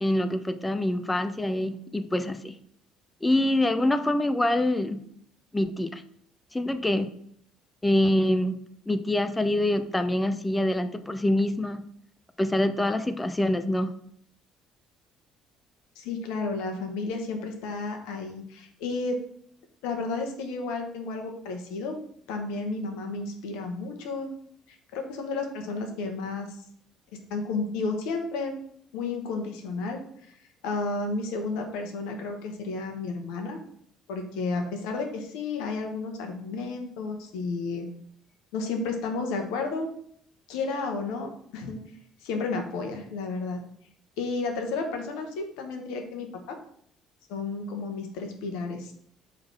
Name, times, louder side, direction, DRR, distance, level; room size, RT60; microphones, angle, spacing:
voice 1, 0.0-2.5 3.2-5.0 5.5-6.0 6.5-7.1 7.8-8.6 8.9-11.8 12.4-13.9, left 1 dB, 15° left, 10 dB, 0.7 m, -25 dB
voice 2, 16.0-19.2 19.8-22.0 22.3-24.3 24.7-26.5 27.1-28.5 28.9-30.0 30.3-30.4 30.6-33.6 34.1-37.9 38.5-39.9 40.5-41.8 42.2-43.6 44.2-46.6 47.3-48.9, left 3 dB, 65° left, 4 dB, 1.2 m, -32 dB
5.0 x 4.1 x 5.8 m, 0.66 s
figure-of-eight pair, 50°, 0 cm